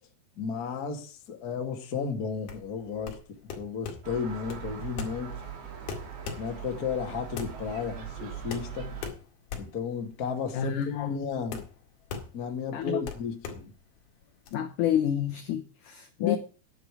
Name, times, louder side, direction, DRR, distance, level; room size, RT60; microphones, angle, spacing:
voice 1, 0.4-3.2 3.5-5.4 6.4-9.0 9.6-11.7 12.3-13.7 16.2-16.4, left 6 dB, 40° left, 1.3 m, -33 dB
sound 1, 2.4-14.5, left 6 dB, 65° left, 3.7 m, -41 dB
Gull seagull, 4.0-9.1, right 8 dB, 80° right, 5.2 m, -41 dB
voice 2, 10.5-11.1 12.7-13.0 14.5-16.4, left 10 dB, 80° left, 1.8 m, -29 dB
10.5 x 10.0 x 4.8 m
omnidirectional pair, 5.0 m